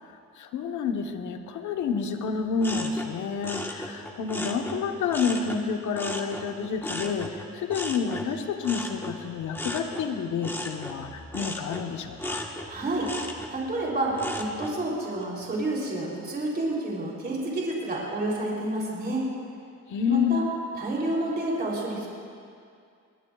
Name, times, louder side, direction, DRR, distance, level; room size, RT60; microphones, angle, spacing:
voice 1, 0.0-12.5 19.9-20.5, left 6 dB, 75° left, 5 dB, 1.2 m, -29 dB
sound 1, 2.6-5.6 5.9-14.8 15.2-15.7, left 1 dB, 5° left, 1.4 m, -36 dB
voice 2, 12.7-13.1 13.5-19.2 20.1-20.4 20.8-22.1, right 2 dB, 30° right, -4 dB, 3.5 m, -29 dB
21.5 x 18.5 x 2.4 m, 2.3 s
cardioid pair, 90°, 30 cm